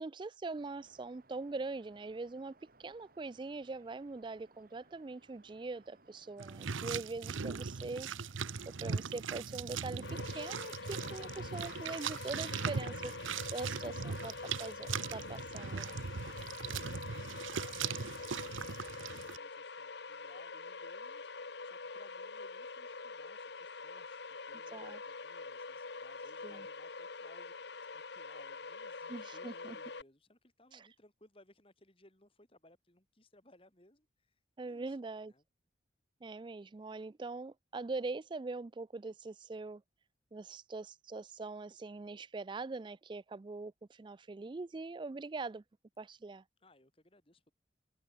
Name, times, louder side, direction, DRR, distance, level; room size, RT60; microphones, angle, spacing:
voice 1, 0.0-2.5 2.8-8.2 8.7-13.1 13.5-16.0 24.7-25.0 26.4-26.7 29.1-29.8 30.7-30.9 34.6-35.3 36.2-39.8 40.3-45.6 46.0-46.4, right 3 dB, 25° right, 0.3 m, -42 dB
sound 1, 0.6-12.9, right 2 dB, 50° right, 2.7 m, -65 dB
sound 2, 6.4-19.4, right 6 dB, 85° right, 0.8 m, -40 dB
sound 3, 10.0-30.0, left 4 dB, 60° left, 1.0 m, -45 dB
voice 2, 13.5-14.0 16.2-35.0 35.3-35.4 46.6-47.5, left 1 dB, 30° left, 3.2 m, -65 dB
head